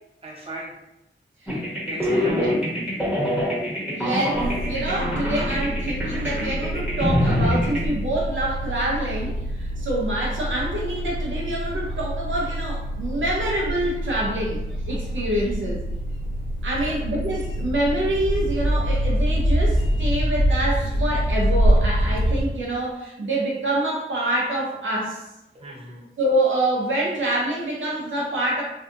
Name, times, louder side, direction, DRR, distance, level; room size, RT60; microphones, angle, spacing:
voice 1, 0.2-0.7 1.9-2.8 3.2-3.3 16.8-17.0 25.5-26.0, right 1 dB, 30° right, -4 dB, 0.8 m, -39 dB
sound 1, 1.5-7.9, equal, 5° right, 1.1 m, -25 dB
voice 2, 2.2-2.6 3.9-14.6 14.9-15.8 16.6-25.2 26.2-28.6, right 1 dB, 80° right, -3 dB, 0.6 m, -26 dB
sound 2, 4.3-22.4, equal, 85° left, 1.0 m, -25 dB
2.6 x 2.4 x 2.5 m, 0.88 s
wide cardioid pair, 65°, 20 cm